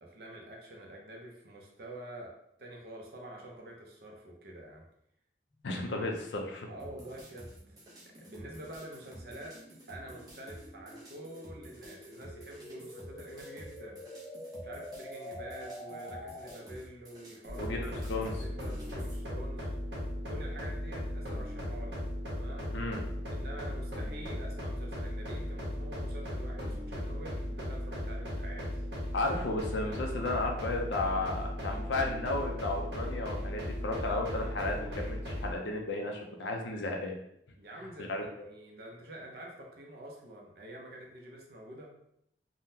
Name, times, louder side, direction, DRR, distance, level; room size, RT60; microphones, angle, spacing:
voice 1, 0.0-2.3 2.6-4.9 6.7-7.8 8.1-9.6 9.9-14.0 14.6-19.7 20.3-22.0 22.3-22.8 23.3-28.7 33.7-35.0 37.6-41.9, right 1 dB, 60° right, -1 dB, 0.6 m, -47 dB
sound 1, 5.5-16.9, left 1 dB, 20° left, 0.3 m, -48 dB
voice 2, 5.6-6.7 17.6-18.3 22.7-23.0 29.1-35.2 35.4-37.2 38.1-38.2, left 2 dB, 90° left, 2 dB, 0.5 m, -33 dB
sound 2, 6.8-19.2, equal, 20° right, 0.7 m, -51 dB
sound 3, 17.5-35.5, left 1 dB, 75° right, 0.9 m, -37 dB
3.6 x 2.1 x 2.7 m, 0.75 s
head